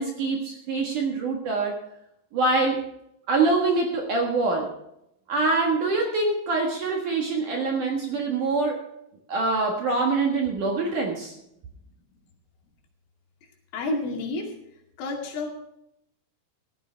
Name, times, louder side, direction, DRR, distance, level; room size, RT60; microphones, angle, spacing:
voice 1, 0.0-1.8 2.3-2.8 3.3-4.7 5.3-8.8 9.3-11.3, right 3 dB, 60° right, 1 dB, 2.3 m, -24 dB
voice 2, 13.7-14.5 15.0-15.5, left 2 dB, 85° left, 0 dB, 4.9 m, -29 dB
16.0 x 13.5 x 3.4 m, 0.81 s
omnidirectional pair, 5.5 m